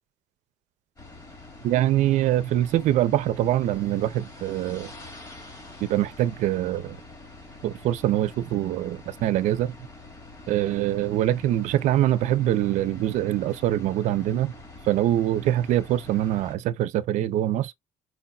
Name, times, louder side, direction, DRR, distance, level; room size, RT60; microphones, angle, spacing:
sound 1, 1.0-16.6, left 2 dB, 30° left, 2.2 m, -45 dB
voice 1, 1.6-4.9 5.8-7.0 7.6-9.7 10.5-14.5 14.8-17.7, right 13 dB, 80° right, 0.6 m, -24 dB
4.7 x 4.0 x 2.3 m
cardioid pair, 115°, 12 cm